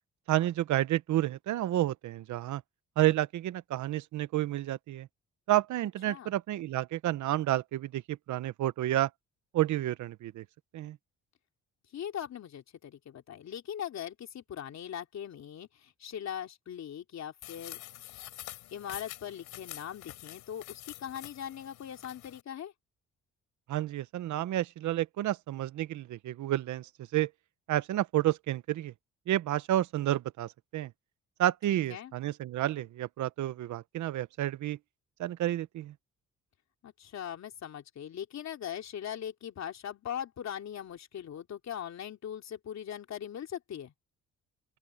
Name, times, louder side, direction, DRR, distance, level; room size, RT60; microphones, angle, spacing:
voice 1, 0.3-2.6 3.0-5.1 5.5-9.1 9.5-10.4 10.7-11.0 23.7-27.3 27.7-28.9 29.3-30.9 31.4-34.8 35.2-35.9, right 14 dB, 75° right, 0.9 m, -30 dB
voice 2, 11.9-17.8 18.7-22.7 31.7-32.1 36.8-43.9, left 9 dB, 60° left, 3.1 m, -40 dB
sound 1, 17.4-22.4, left 14 dB, 90° left, 4.2 m, -47 dB
open air
cardioid pair, 90°, 30 cm